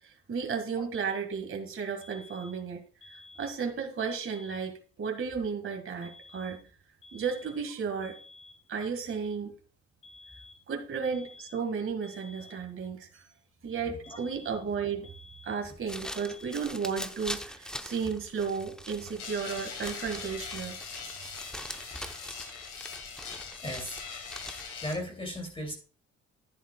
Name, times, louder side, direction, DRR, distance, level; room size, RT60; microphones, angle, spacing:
voice 1, 0.3-2.8 3.4-6.6 7.1-8.2 8.7-9.5 10.7-13.2 13.6-15.1 15.4-20.8 21.0-21.1, right 6 dB, 45° right, 1.9 m, -33 dB
sound 1, 2.0-2.7 3.0-3.7 4.0-4.7 6.0-6.7 7.0-7.7 8.0-8.7 10.0-10.7 11.0-11.7 12.0-12.7 14.0-14.7 15.0-15.7 16.0-16.7, left 2 dB, 40° left, 1.7 m, -52 dB
sound 2, 15.6-24.9, equal, ahead, 0.8 m, -43 dB
sound 3, 19.2-25.0, left 6 dB, 90° left, 2.6 m, -42 dB
voice 2, 23.6-24.0 24.8-25.7, equal, 20° left, 2.8 m, -36 dB
10.5 x 10.5 x 2.3 m
cardioid pair, 90°, 30 cm